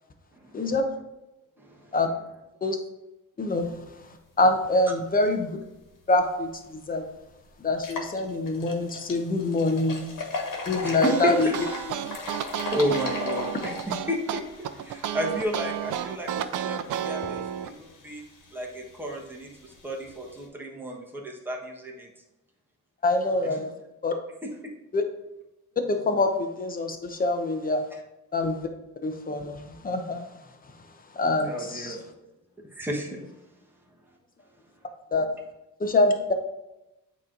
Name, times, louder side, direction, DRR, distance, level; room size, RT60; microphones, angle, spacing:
voice 1, 1.6-1.9 10.8-11.6 11.8-12.0 12.7-18.2 18.5-22.1 23.4-23.6 24.4-24.5 31.4-32.0 32.7-33.2, equal, 5° right, -2 dB, 1.2 m, -32 dB
voice 2, 3.4-4.0 4.4-5.5 6.1-7.0 7.6-10.1 10.7-11.5 23.0-23.7 24.0-24.1 24.9-25.0 25.9-27.8 28.3-28.7 29.0-30.3 31.1-32.0 35.1-35.3 35.8-36.3, left 2 dB, 25° left, 5 dB, 0.8 m, -25 dB
sound 1, 6.4-6.5 7.0-7.1 7.7-20.5, left 3 dB, 65° left, 1.5 m, -38 dB
sound 2, 10.9-17.7, right 10 dB, 65° right, 0.5 m, -32 dB
8.5 x 3.1 x 3.8 m, 0.95 s
cardioid pair, 115°, 34 cm